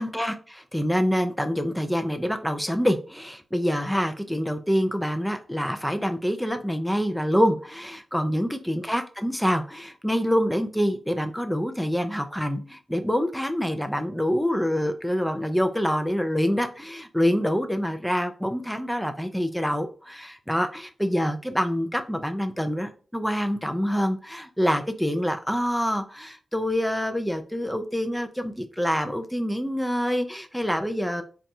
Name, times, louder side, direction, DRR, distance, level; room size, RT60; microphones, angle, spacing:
voice 1, 0.0-31.2, equal, ahead, 7 dB, 0.4 m, -26 dB
4.0 x 2.3 x 2.6 m, 0.38 s
wide cardioid pair, 140°, 0 cm